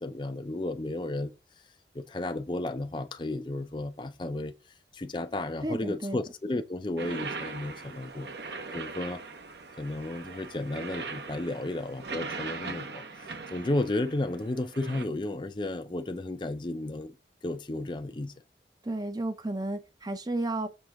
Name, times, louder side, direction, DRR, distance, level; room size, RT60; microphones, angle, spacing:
voice 1, 0.0-1.3 1.9-4.5 4.9-8.3 8.7-9.2 9.7-17.2 17.4-18.3, left 2 dB, 25° left, 0.5 m, -33 dB
voice 2, 5.6-6.2 18.8-20.7, right 2 dB, 20° right, 0.6 m, -32 dB
sound 1, 7.0-15.0, right 4 dB, 75° right, 1.0 m, -40 dB
6.4 x 3.3 x 5.7 m
head